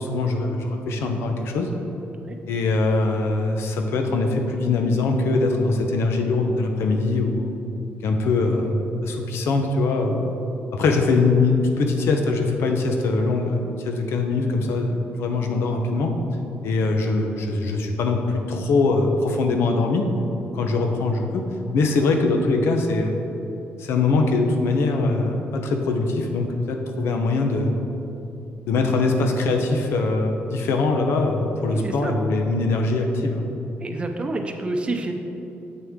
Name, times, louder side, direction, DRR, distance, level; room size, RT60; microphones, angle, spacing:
voice 1, 0.0-1.7 2.5-7.4 8.0-10.3 10.7-16.1 16.6-20.1 20.5-21.4 21.7-23.2 23.8-27.7 28.7-33.4, left 3 dB, 85° left, 4 dB, 0.8 m, -22 dB
voice 2, 31.7-32.2 33.8-35.1, right 2 dB, 25° right, 4 dB, 0.6 m, -28 dB
7.8 x 6.4 x 3.7 m, 2.9 s
cardioid pair, 140°, 4 cm